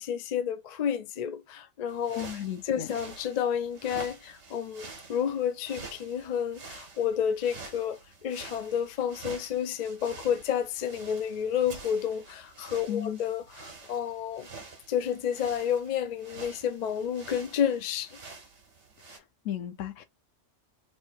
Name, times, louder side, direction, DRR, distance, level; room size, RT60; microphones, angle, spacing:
voice 1, 0.0-2.3 2.7-14.5 14.9-18.2, left 8 dB, 60° left, 0.4 m, -30 dB
sound 1, 1.9-19.2, right 4 dB, 65° right, 1.4 m, -48 dB
voice 2, 2.2-2.9 12.9-13.2 19.1-20.0, left 11 dB, 80° left, 1.0 m, -35 dB
3.2 x 3.0 x 4.5 m
omnidirectional pair, 1.3 m